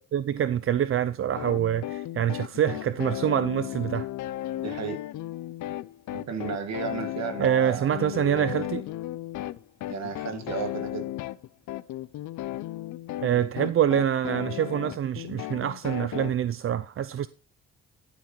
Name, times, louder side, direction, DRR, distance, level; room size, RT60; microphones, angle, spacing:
voice 1, 0.1-4.1 7.4-8.9 13.2-17.3, right 10 dB, 45° right, 0.5 m, -26 dB
sound 1, 1.4-16.3, left 14 dB, 75° left, 0.7 m, -35 dB
voice 2, 4.5-5.0 6.1-7.9 9.9-11.1, right 5 dB, 60° right, 2.3 m, -33 dB
11.5 x 5.7 x 4.6 m
cardioid pair, 90°, 30 cm